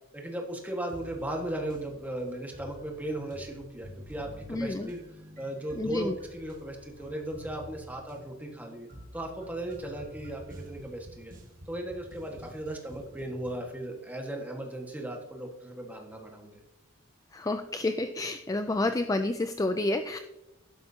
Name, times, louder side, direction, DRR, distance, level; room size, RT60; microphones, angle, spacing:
voice 1, 0.1-5.0 5.4-11.3 11.7-16.5, right 1 dB, 10° right, 1 dB, 1.6 m, -37 dB
sound 1, 0.9-13.7, equal, 40° right, 1.6 m, -49 dB
voice 2, 4.5-4.9 5.8-6.1 17.3-20.2, left 2 dB, 15° left, 9 dB, 0.3 m, -29 dB
12.0 x 10.5 x 2.8 m, 0.99 s
head